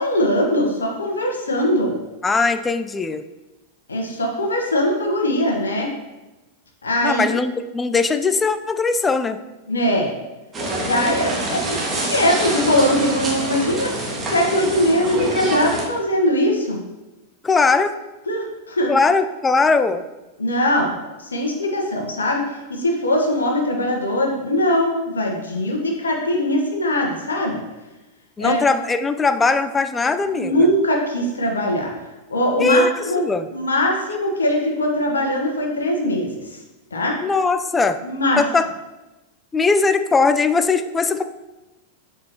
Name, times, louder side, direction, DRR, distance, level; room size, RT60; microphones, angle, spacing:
voice 1, 0.0-2.0 3.9-5.9 6.8-7.2 9.7-10.1 10.8-11.8 12.1-13.9 14.3-16.8 18.3-18.9 20.4-20.9 21.2-22.4 22.7-27.6 28.4-28.6 30.3-31.9 32.3-33.2 33.5-36.6 36.9-37.2 38.0-38.4, left 1 dB, 80° left, 1 dB, 1.3 m, -21 dB
voice 2, 2.2-3.2 7.0-9.4 17.4-17.9 18.9-20.0 28.4-30.6 32.6-33.5 37.2-38.0 38.4-38.7 39.5-41.2, left 4 dB, 15° left, 10 dB, 0.4 m, -19 dB
sound 1, 10.5-15.8, right 2 dB, 25° right, 1.8 m, -26 dB
7.7 x 5.4 x 3.0 m, 1.1 s
figure-of-eight pair, 90°, 0 cm